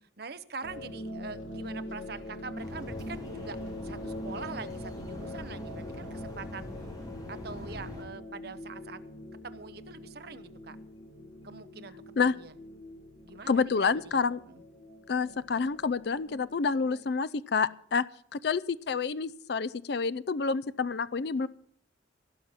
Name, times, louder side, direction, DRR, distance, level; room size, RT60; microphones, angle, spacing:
voice 1, 0.2-3.6 3.8-6.7 7.3-9.0 9.4-10.8 11.4-12.5 13.2-14.6, right 4 dB, 55° right, 12 dB, 0.9 m, -44 dB
sound 1, 0.6-17.0, left 1 dB, 80° left, 2.9 m, -43 dB
sound 2, 2.6-8.0, left 1 dB, 20° left, 3.4 m, -43 dB
voice 2, 13.5-14.4 15.1-18.0 18.3-21.5, left 5 dB, 55° left, 17 dB, 0.4 m, -28 dB
17.5 x 5.8 x 9.4 m, 0.64 s
head